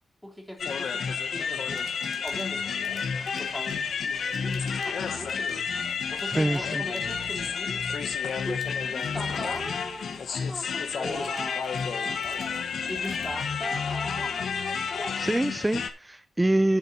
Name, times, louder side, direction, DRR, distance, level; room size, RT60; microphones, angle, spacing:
voice 1, 0.2-1.1 1.3-1.8 2.2-3.1 3.4-5.7 6.1-7.8 8.4-12.4 12.9-14.5 14.9-15.2, equal, 5° left, 3.5 m, -39 dB
sound 1, 0.6-15.9, left 6 dB, 75° left, 1.2 m, -30 dB
sound 2, 1.7-14.1, right 4 dB, 50° right, 3.0 m, -55 dB
voice 2, 6.2-6.8 15.2-16.8, right 1 dB, 10° right, 0.4 m, -25 dB
11.5 x 9.7 x 2.8 m
wide cardioid pair, 120°, 0 cm